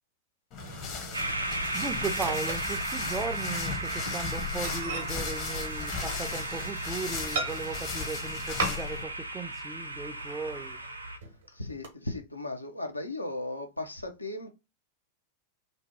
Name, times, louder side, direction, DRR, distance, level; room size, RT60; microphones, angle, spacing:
sound 1, 0.5-9.0, left 6 dB, 40° left, 0.8 m, -37 dB
Microwave oven, 0.6-3.4 3.8-4.0 4.3-4.4 4.6-6.7 7.3-8.0 8.6-9.2 9.4-9.5 10.0-10.8 11.2-11.9, right 3 dB, 60° right, 0.7 m, -38 dB
sound 2, 1.1-11.2, right 2 dB, 80° right, 0.4 m, -35 dB
voice 1, 1.7-10.8, right 4 dB, 15° right, 0.4 m, -37 dB
voice 2, 11.5-14.5, left 2 dB, 85° left, 0.5 m, -36 dB
2.6 x 2.1 x 3.1 m
figure-of-eight pair, 90°, 0 cm